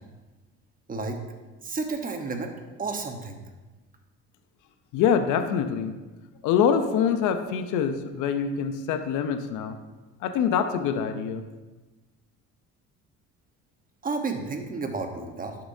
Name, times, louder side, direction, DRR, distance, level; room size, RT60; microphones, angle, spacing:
voice 1, 0.9-1.2 1.6-2.5 2.8-3.4 14.0-15.6, right 3 dB, 30° right, 4 dB, 1.1 m, -31 dB
voice 2, 4.9-6.0 6.4-9.8 10.2-11.4, left 7 dB, 80° left, 9 dB, 0.8 m, -25 dB
11.0 x 7.0 x 2.7 m, 1.2 s
cardioid pair, 95°, 31 cm